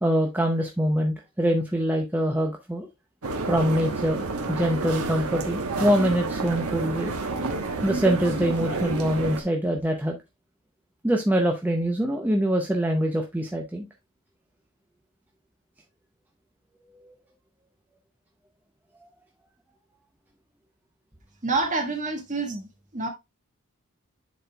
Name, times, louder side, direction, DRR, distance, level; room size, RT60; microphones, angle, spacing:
voice 1, 0.0-2.9 3.5-7.1 7.8-10.2 11.0-13.9, equal, 10° right, 0.6 m, -24 dB
sound 1, 3.2-9.4, right 3 dB, 80° right, 1.1 m, -29 dB
voice 2, 21.4-22.7 22.9-23.1, right 3 dB, 35° right, 1.6 m, -27 dB
10.0 x 4.2 x 2.2 m
head